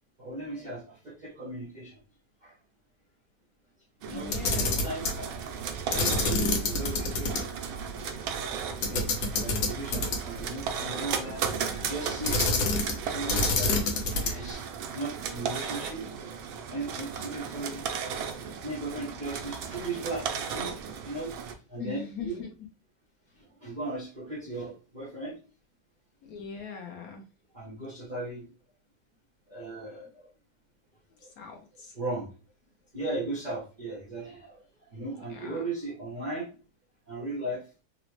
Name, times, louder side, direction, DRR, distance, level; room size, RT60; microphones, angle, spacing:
voice 1, 0.2-2.0 2.4-2.6 4.1-5.4 5.9-7.5 8.8-9.1 9.4-11.5 11.8-12.4 13.0-16.4 16.7-17.8 18.6-21.3 21.7-22.5 23.6-25.4 27.5-28.5 29.5-30.2 31.2-31.3 31.9-32.3 32.9-36.5 37.1-37.6, right 2 dB, 60° right, -4 dB, 0.4 m, -37 dB
sound 1, 4.0-21.5, right 7 dB, 85° right, 1.4 m, -36 dB
voice 2, 4.1-4.8 11.5-11.9 21.8-22.5 26.2-27.2 31.4-32.0 35.3-35.6, left 6 dB, 65° left, 2 dB, 0.9 m, -41 dB
Camera, 4.2-5.2 5.9-7.4 7.7-7.8 8.8-10.4 12.2-13.0 13.3-14.5, left 3 dB, 80° left, 1.5 m, -27 dB
3.9 x 2.0 x 3.0 m, 0.35 s
omnidirectional pair, 2.0 m